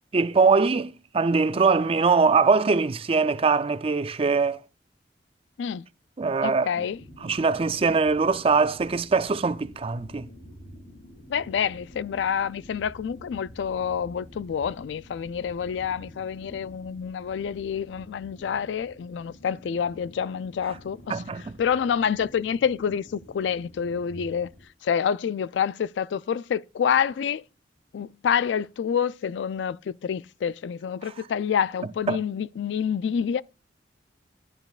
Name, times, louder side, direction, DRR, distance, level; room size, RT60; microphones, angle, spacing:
voice 1, 0.1-4.6 6.2-6.9 7.2-10.3 21.1-21.4 31.0-31.1 32.1-32.2, right 4 dB, 35° right, 0.5 m, -22 dB
voice 2, 6.4-7.0 11.3-21.1 21.6-24.5 24.8-27.4 27.9-33.4, left 7 dB, 85° left, 0.3 m, -27 dB
sound 1, 6.9-24.6, equal, 50° left, 5.8 m, -48 dB
9.8 x 9.2 x 2.4 m
head